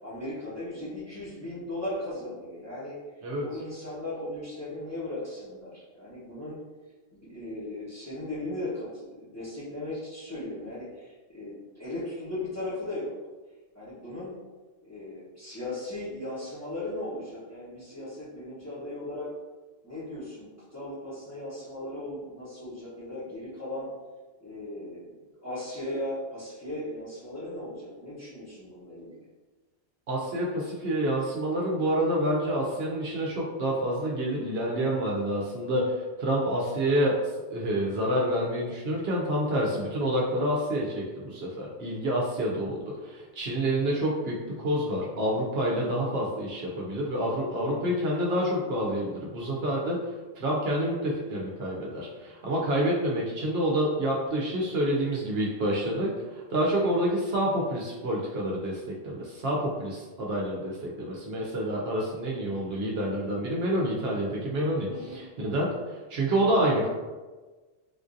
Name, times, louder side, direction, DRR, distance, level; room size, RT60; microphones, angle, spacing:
voice 1, 0.0-3.0 3.4-6.6 7.1-13.1 13.7-14.3 14.8-19.3 19.8-23.9 24.4-25.1 25.4-29.2 64.9-65.2, left 1 dB, 15° left, -10 dB, 0.9 m, -37 dB
voice 2, 30.1-37.1 37.5-50.0 50.3-66.9, right 1 dB, 65° right, -3 dB, 0.8 m, -28 dB
3.6 x 2.5 x 2.5 m, 1.3 s
omnidirectional pair, 1.2 m